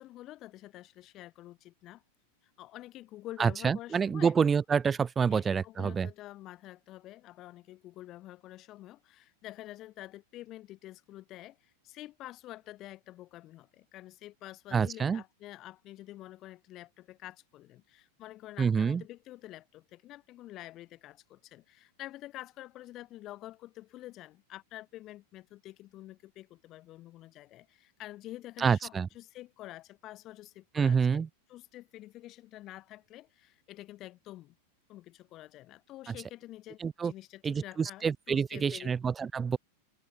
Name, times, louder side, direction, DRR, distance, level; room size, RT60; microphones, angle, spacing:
voice 1, 0.0-2.0 2.4-4.4 5.3-31.2 31.5-34.5 34.9-39.0, left 15 dB, 35° left, 6.0 m, -48 dB
voice 2, 3.4-6.1 14.7-15.2 18.6-19.0 28.6-29.1 30.7-31.3 36.1-36.2 36.8-37.1 37.4-39.6, right 6 dB, 20° right, 3.3 m, -27 dB
open air
figure-of-eight pair, 90°, 0 cm